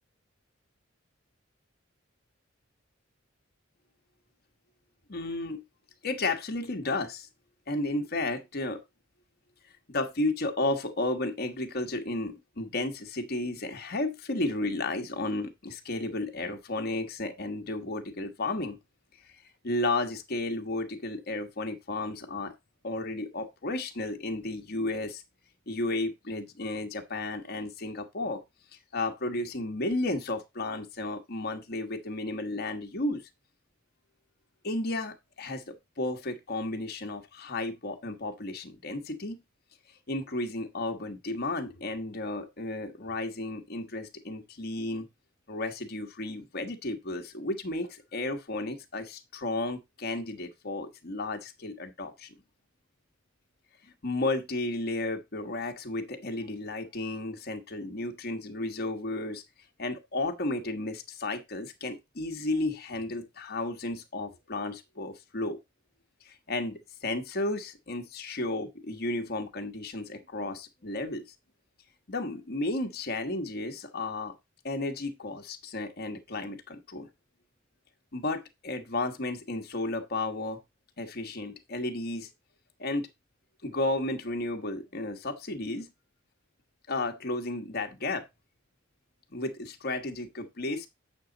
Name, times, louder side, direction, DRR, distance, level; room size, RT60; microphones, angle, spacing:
voice 1, 5.1-5.6 6.0-7.3 7.7-8.8 9.9-18.8 19.6-22.5 22.8-25.2 25.7-28.4 28.9-33.2 34.6-39.4 40.1-45.1 45.5-52.3 54.0-59.4 59.8-65.6 66.2-71.2 72.1-74.3 74.6-77.1 78.1-80.6 81.0-82.3 82.8-83.1 83.6-85.9 86.9-88.3 89.3-90.9, left 2 dB, 50° left, 1.2 m, -33 dB
8.3 x 6.2 x 3.9 m
head